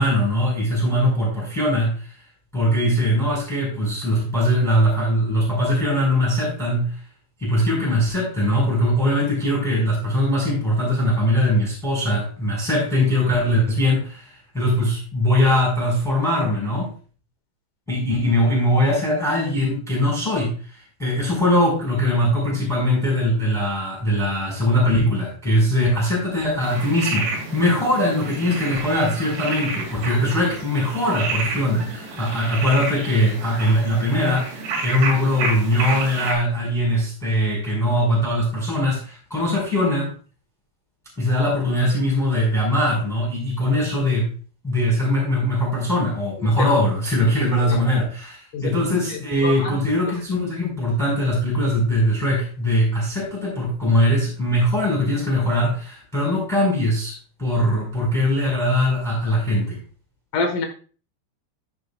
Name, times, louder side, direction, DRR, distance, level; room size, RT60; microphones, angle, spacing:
voice 1, 0.0-2.1 2.5-6.9 7.4-16.9 17.9-40.1 41.2-44.3 44.6-59.8, left 1 dB, ahead, -3 dB, 4.5 m, -21 dB
sound 1, 26.6-36.3, right 3 dB, 70° right, 4.5 m, -30 dB
voice 2, 48.5-49.8 60.3-60.7, left 4 dB, 60° left, 3 dB, 2.6 m, -28 dB
15.5 x 6.8 x 2.4 m, 0.39 s
omnidirectional pair, 5.2 m